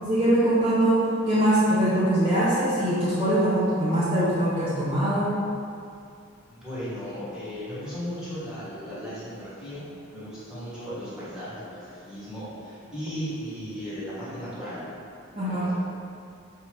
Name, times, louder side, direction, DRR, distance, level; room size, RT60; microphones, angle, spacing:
voice 1, 0.0-5.4 15.4-15.7, right 1 dB, 30° right, -11 dB, 0.6 m, -22 dB
voice 2, 6.5-9.8 10.1-14.8 15.3-15.8, equal, 5° right, -12 dB, 1.2 m, -36 dB
4.8 x 2.8 x 3.2 m, 2.4 s
head